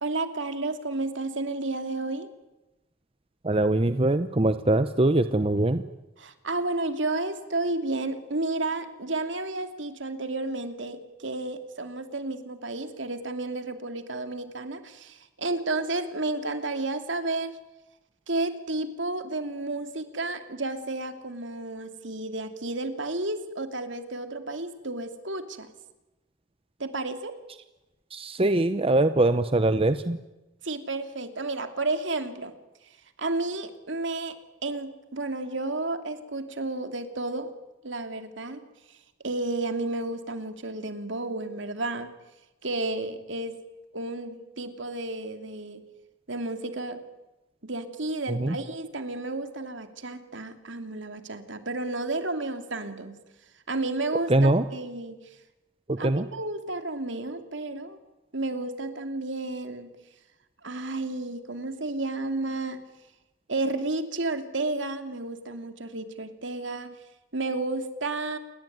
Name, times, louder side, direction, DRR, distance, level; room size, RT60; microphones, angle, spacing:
voice 1, 0.0-2.3 6.2-17.6 18.3-25.7 26.8-27.4 30.6-32.5 33.2-37.5 37.8-38.6 39.2-42.1 42.6-43.6 43.9-45.8 46.3-47.0 47.6-53.2 53.7-55.2 56.0-58.0 58.3-59.9 60.6-62.8 63.5-67.0 67.3-68.4, right 2 dB, 65° right, 8 dB, 2.8 m, -32 dB
voice 2, 3.4-5.8 28.1-30.2 48.4-48.5 54.3-54.6 56.0-56.3, right 2 dB, 30° right, 11 dB, 0.9 m, -22 dB
29.0 x 21.5 x 9.4 m, 1.0 s
head